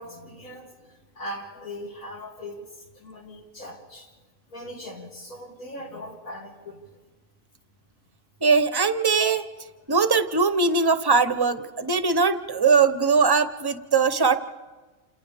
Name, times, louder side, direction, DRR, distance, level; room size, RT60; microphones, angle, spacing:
voice 1, 0.0-2.7 2.9-4.1 4.5-6.8, left 1 dB, 85° left, -1 dB, 3.2 m, -40 dB
voice 2, 8.4-9.4 9.9-14.4, right 5 dB, 25° right, 10 dB, 0.6 m, -21 dB
28.5 x 28.0 x 3.5 m, 1.3 s
omnidirectional pair, 1.4 m